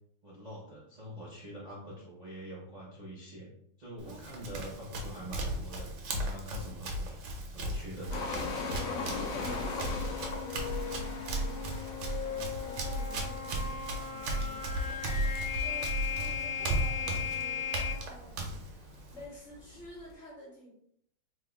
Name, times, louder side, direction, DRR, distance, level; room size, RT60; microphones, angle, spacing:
voice 1, 0.2-3.5 3.8-8.2, equal, 65° right, -6 dB, 0.4 m, -45 dB
Run, 4.0-19.3, right 1 dB, 85° right, 1.4 m, -36 dB
sound 1, 8.1-20.1, left 4 dB, 90° left, 0.7 m, -41 dB
sound 2, 8.3-17.9, left 7 dB, 70° left, 1.1 m, -38 dB
voice 2, 8.8-18.8 19.1-20.7, equal, 55° left, -4 dB, 0.8 m, -50 dB
3.5 x 2.1 x 3.4 m, 0.71 s
omnidirectional pair, 2.1 m